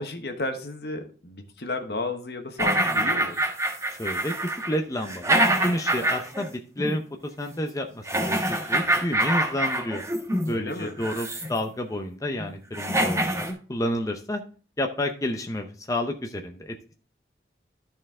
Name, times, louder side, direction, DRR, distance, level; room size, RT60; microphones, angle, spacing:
voice 1, 0.0-3.4 10.5-11.0, left 2 dB, 60° left, 6 dB, 1.1 m, -33 dB
sound 1, 2.6-6.5 6.8-7.0 8.1-10.5 11.0-11.6 12.4-12.5 12.7-13.5, right 1 dB, 15° right, 1.4 m, -25 dB
voice 2, 3.9-4.3 4.7-8.4 8.7-10.0 10.5-14.4 14.8-16.9, left 1 dB, 20° left, 4 dB, 0.6 m, -30 dB
12.5 x 4.4 x 3.6 m, 0.40 s
head